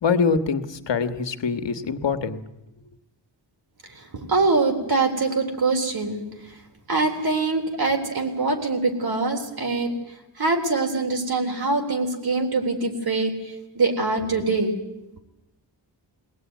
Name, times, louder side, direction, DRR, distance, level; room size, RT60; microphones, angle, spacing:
voice 1, 0.0-2.4, left 5 dB, 80° left, 9 dB, 1.4 m, -24 dB
voice 2, 4.1-6.2 6.9-9.9 10.4-13.3 13.8-14.7, right 3 dB, 55° right, 3 dB, 3.6 m, -23 dB
22.0 x 18.0 x 9.4 m, 0.94 s
wide cardioid pair, 140°, 43 cm